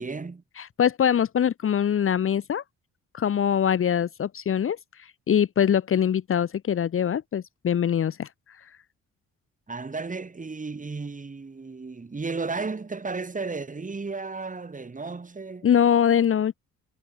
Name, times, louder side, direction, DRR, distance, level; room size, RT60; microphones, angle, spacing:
voice 1, 0.0-0.4 9.7-15.7, right 4 dB, 25° right, 5.3 m, -34 dB
voice 2, 0.6-2.6 3.1-8.3 15.6-16.5, left 9 dB, 45° left, 1.0 m, -23 dB
cardioid pair, 90°, 30 cm